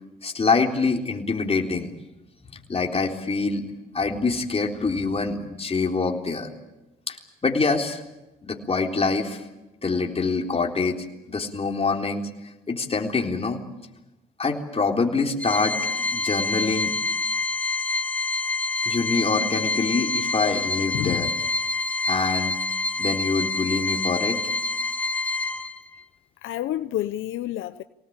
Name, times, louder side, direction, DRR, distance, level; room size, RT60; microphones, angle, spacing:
voice 1, 0.2-1.9 2.7-3.6 3.9-6.5 7.1-7.2 7.4-8.0 8.4-9.4 9.8-12.3 12.7-13.6 14.4-16.9 18.8-21.3 22.0-22.6 23.0-24.4, left 4 dB, 30° left, 3.8 m, -25 dB
Organ, 15.4-26.0, left 3 dB, 5° left, 1.7 m, -27 dB
voice 2, 20.9-21.3 26.4-27.8, left 13 dB, 80° left, 0.8 m, -29 dB
24.5 x 18.5 x 8.8 m
cardioid pair, 90°, 20 cm